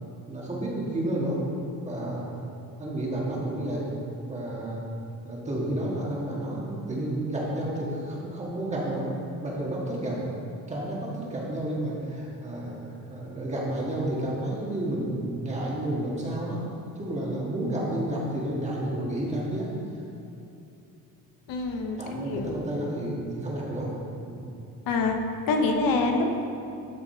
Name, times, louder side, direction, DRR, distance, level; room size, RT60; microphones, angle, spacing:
voice 1, 0.3-1.4 1.8-2.3 2.8-3.8 4.3-4.8 5.2-9.0 9.4-10.2 10.7-12.8 13.1-16.6 17.0-19.7 22.0-23.9 24.2-24.4, right 1 dB, 20° right, -4 dB, 1.7 m, -31 dB
voice 2, 21.5-22.5 24.9-25.2 25.5-26.3, left 3 dB, 75° left, 3 dB, 1.0 m, -25 dB
12.5 x 4.9 x 4.5 m, 2.8 s
cardioid pair, 165°, 34 cm